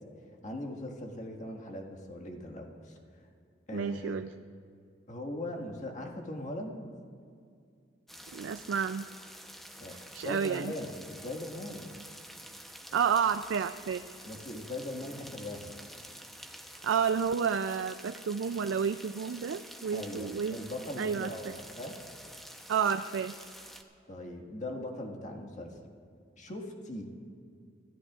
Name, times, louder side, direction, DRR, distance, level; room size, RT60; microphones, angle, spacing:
voice 1, 0.4-3.0 3.7-4.2 5.1-6.9 9.8-10.0 10.2-11.9 14.2-15.8 19.9-21.9 24.1-25.7 26.4-27.2, left 1 dB, 40° left, 1 dB, 1.7 m, -40 dB
voice 2, 3.7-4.3 8.3-9.0 9.9-10.7 12.9-14.0 16.8-20.6 21.0-21.5 22.7-23.3, right 6 dB, 85° right, 10 dB, 0.4 m, -30 dB
sound 1, 8.1-23.8, equal, ahead, 0.8 m, -49 dB
26.0 x 14.5 x 2.4 m, 2.3 s
head